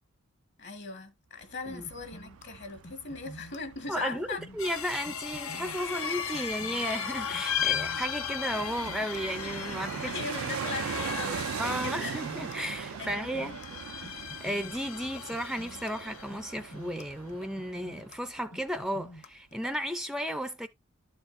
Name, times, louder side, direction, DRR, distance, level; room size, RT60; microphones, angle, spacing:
voice 1, 0.6-4.4 10.0-12.2 13.0-13.8, left 4 dB, 55° left, 1.6 m, -39 dB
Fixed-wing aircraft airplane, 1.4-18.4 18.7-18.8, right 7 dB, 80° right, 0.4 m, -41 dB
sound 1, 1.8-19.7, equal, 35° left, 0.8 m, -49 dB
voice 2, 3.9-4.3 4.5-10.1 11.6-13.5 14.4-20.7, equal, ahead, 0.5 m, -34 dB
sound 2, 4.6-16.6, left 8 dB, 80° left, 0.8 m, -37 dB
12.5 x 4.3 x 2.6 m
head